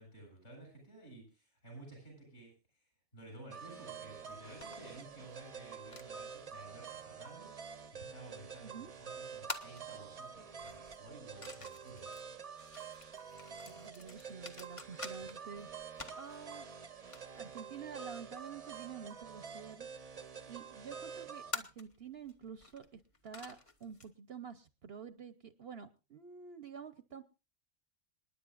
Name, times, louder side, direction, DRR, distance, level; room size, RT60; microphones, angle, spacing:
voice 1, 0.0-2.5 3.1-12.1, right 2 dB, 60° left, 0 dB, 8.3 m, -54 dB
sound 1, 3.5-21.5, right 6 dB, 35° right, 0.8 m, -48 dB
sound 2, 4.3-24.1, left 3 dB, 25° left, 1.0 m, -51 dB
voice 2, 8.6-8.9 13.7-15.7 16.2-16.7 17.3-19.9 20.5-27.2, right 7 dB, 55° right, 11 dB, 0.9 m, -49 dB
27.0 x 10.0 x 2.5 m, 0.29 s
omnidirectional pair, 1.4 m